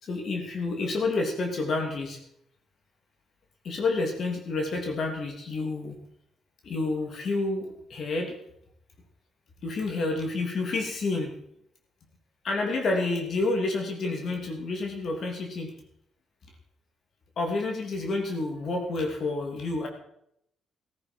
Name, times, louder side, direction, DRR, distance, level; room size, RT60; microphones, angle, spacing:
voice 1, 0.0-2.2 3.6-6.0 6.6-8.4 9.6-11.3 12.4-15.7 17.4-19.9, left 3 dB, 55° left, 2 dB, 3.1 m, -29 dB
14.0 x 14.0 x 4.7 m, 0.73 s
cardioid pair, 90°, 0 cm